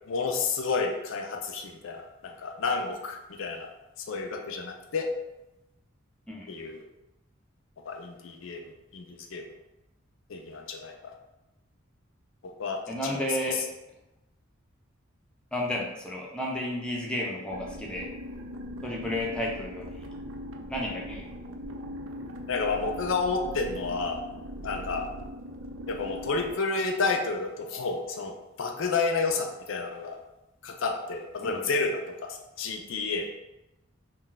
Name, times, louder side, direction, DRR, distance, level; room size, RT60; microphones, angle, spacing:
voice 1, 0.1-3.7 4.0-5.1 6.5-6.8 7.9-8.6 8.9-9.5 10.3-11.1 12.6-13.2 22.5-24.2 24.6-25.1 25.9-30.2 30.6-33.3, left 4 dB, 65° left, 3 dB, 0.4 m, -30 dB
voice 2, 12.9-13.7 15.5-18.1 18.8-20.1 20.7-21.2 31.5-31.6, left 1 dB, 5° left, -3 dB, 0.4 m, -32 dB
sound 1, 17.5-26.5, equal, 65° right, 0.3 m, -40 dB
2.3 x 2.2 x 3.9 m, 0.94 s
head